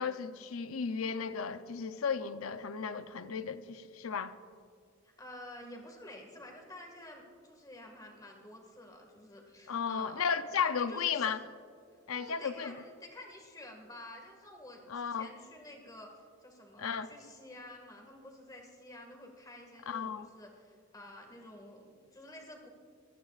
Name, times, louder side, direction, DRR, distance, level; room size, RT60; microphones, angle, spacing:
voice 1, 0.0-4.3 9.7-11.4 12.1-12.7 14.9-15.3 16.8-17.1 19.9-20.3, left 6 dB, 85° left, 0.6 m, -34 dB
voice 2, 5.0-11.3 11.9-22.7, left 1 dB, 20° left, 1.9 m, -50 dB
26.5 x 15.5 x 2.5 m
head